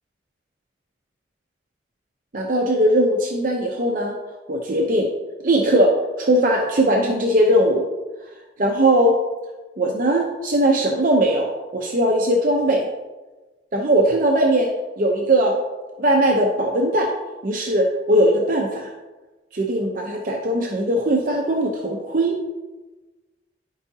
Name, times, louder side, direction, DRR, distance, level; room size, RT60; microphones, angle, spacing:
voice 1, 2.3-4.2 4.5-5.1 5.4-7.8 8.6-9.1 9.8-12.9 13.7-14.7 15.0-15.6 16.0-17.1 17.4-18.9 19.5-22.4, right 1 dB, 50° right, 0 dB, 0.7 m, -19 dB
11.5 x 4.8 x 2.8 m, 1.2 s
head